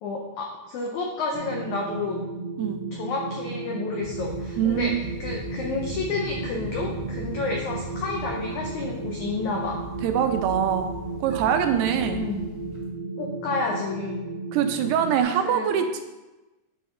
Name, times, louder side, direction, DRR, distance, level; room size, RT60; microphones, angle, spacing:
voice 1, 0.0-2.2 2.9-4.9 5.2-9.8 11.9-12.4 13.2-14.2 15.4-15.7, left 4 dB, 85° left, -1 dB, 1.6 m, -30 dB
sound 1, 1.3-15.2, right 3 dB, 65° right, 2.6 m, -34 dB
sound 2, 4.0-12.9, right 1 dB, 10° right, 1.9 m, -40 dB
voice 2, 4.6-4.9 10.0-12.2 14.5-16.0, right 9 dB, 85° right, 6 dB, 2.7 m, -24 dB
9.2 x 6.0 x 3.8 m, 1.1 s
omnidirectional pair, 4.7 m